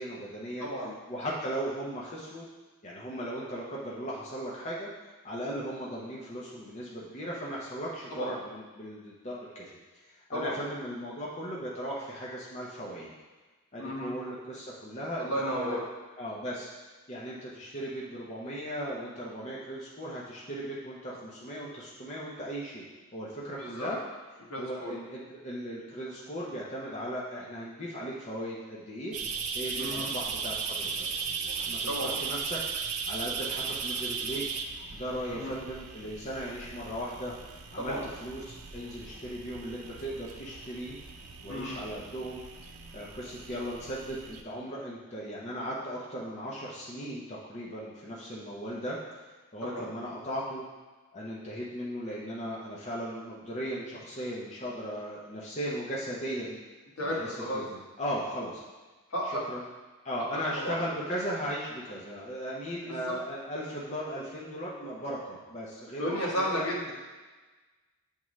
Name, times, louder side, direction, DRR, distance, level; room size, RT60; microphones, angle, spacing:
voice 1, 0.0-0.7 1.1-2.4 2.8-4.9 5.2-9.6 10.1-13.1 13.7-15.8 16.2-16.7 17.1-22.8 23.1-24.0 24.6-29.1 29.5-31.0 31.7-32.6 33.1-34.4 34.9-37.3 37.7-38.4 38.7-41.0 41.4-42.5 42.9-49.0 49.5-50.6 51.1-56.6 57.0-57.4 57.7-58.6 59.5-59.6 60.0-66.6, equal, 30° left, -5 dB, 0.7 m, -37 dB
voice 2, 0.6-0.9 8.1-8.4 10.3-10.6 13.8-14.1 15.2-15.8 23.6-23.9 24.5-24.9 29.8-30.1 31.9-32.2 35.3-35.6 37.8-38.1 41.5-41.8 49.6-49.9 57.0-57.6 59.1-59.4 60.2-60.3 60.6-60.8 62.9-63.2 66.0-66.9, equal, 70° left, -4 dB, 1.4 m, -33 dB
sound 1, 29.1-44.4, right 5 dB, 80° right, 0.5 m, -37 dB
8.4 x 3.7 x 3.1 m, 1.3 s
head